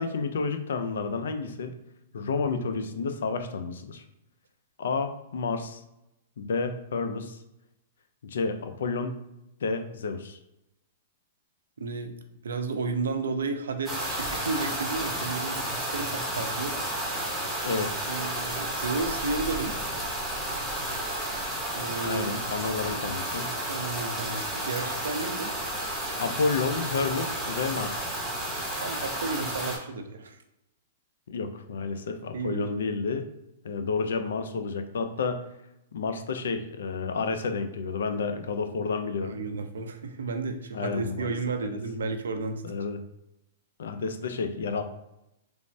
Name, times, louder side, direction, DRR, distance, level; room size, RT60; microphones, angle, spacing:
voice 1, 0.0-1.8 2.1-4.0 4.8-5.8 6.4-7.4 8.2-9.2 9.6-10.4 17.6-18.0 22.0-23.5 26.2-28.1 31.3-33.3 33.6-35.4 35.9-39.4 40.7-41.3 41.6-41.7 42.6-43.0 43.8-44.8, left 4 dB, 80° left, 8 dB, 0.4 m, -30 dB
voice 2, 11.8-12.2 12.4-16.7 18.1-19.8 21.7-22.3 23.7-25.5 28.8-30.4 32.3-32.7 39.2-42.6, right 4 dB, 90° right, 6 dB, 0.4 m, -32 dB
sound 1, 13.9-29.8, right 1 dB, ahead, 0.7 m, -32 dB
3.2 x 2.0 x 2.6 m, 0.86 s
hypercardioid pair, 135°, 0 cm